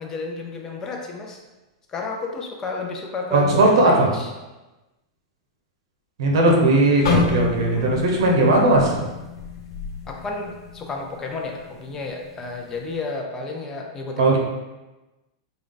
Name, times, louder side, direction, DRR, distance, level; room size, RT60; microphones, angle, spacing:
voice 1, 0.0-1.4 1.9-4.3 7.7-8.1 10.1-14.4, left 3 dB, 20° left, 1 dB, 0.5 m, -32 dB
voice 2, 3.3-4.1 6.2-9.0 14.2-14.4, right 2 dB, 75° right, 0 dB, 1.0 m, -17 dB
sound 1, 7.0-11.1 11.4-11.7 12.3-12.7, left 5 dB, 75° left, 0.9 m, -27 dB
3.7 x 2.3 x 3.9 m, 1.1 s
supercardioid pair, 140°, 3 cm